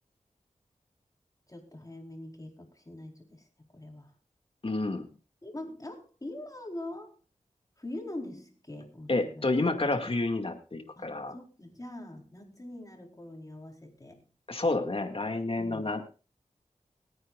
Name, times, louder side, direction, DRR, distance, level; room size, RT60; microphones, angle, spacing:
voice 1, 1.5-4.1 5.4-7.1 7.8-9.6 11.0-14.3 15.6-15.9, left 1 dB, 25° left, 1 dB, 4.4 m, -43 dB
voice 2, 4.6-5.1 9.1-11.3 14.5-16.1, left 2 dB, 45° left, 5 dB, 2.3 m, -29 dB
23.0 x 9.4 x 2.5 m, 0.35 s
cardioid pair, 45°, 13 cm